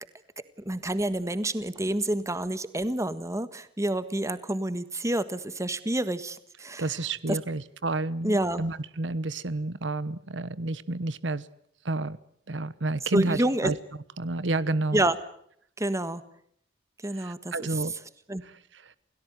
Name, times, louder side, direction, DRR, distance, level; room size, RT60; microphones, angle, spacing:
voice 1, 0.7-6.8 7.3-7.4 8.2-8.6 13.1-13.7 14.9-15.1 15.8-16.2 17.0-17.5 18.3-18.4, right 1 dB, 15° right, 13 dB, 1.5 m, -28 dB
voice 2, 6.8-11.5 11.8-12.2 12.5-13.7 14.2-15.0 17.1-17.9 18.4-19.0, right 2 dB, 85° right, 17 dB, 1.1 m, -30 dB
28.5 x 18.0 x 9.5 m, 0.69 s
head